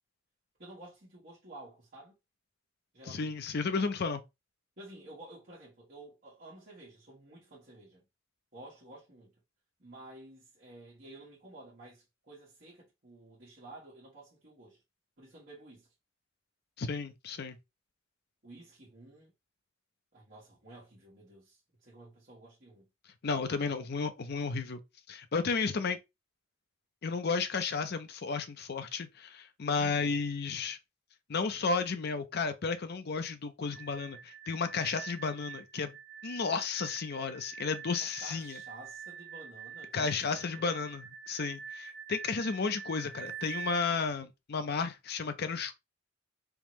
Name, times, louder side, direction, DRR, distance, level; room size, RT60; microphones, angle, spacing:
voice 1, 0.6-2.1 2.9-3.3 3.7-3.9 4.8-8.1 8.5-9.3 9.8-14.8 15.2-15.9 18.4-19.3 20.1-22.9 29.8-30.2 38.0-40.8, right 2 dB, 45° right, 1.3 m, -52 dB
voice 2, 3.1-4.2 16.8-17.6 23.2-24.8 25.1-26.0 27.0-30.8 31.3-36.0 36.2-38.6 39.9-45.7, left 4 dB, 55° left, 0.5 m, -33 dB
sound 1, 33.6-43.8, right 7 dB, 25° left, 1.6 m, -46 dB
3.6 x 2.9 x 3.0 m
head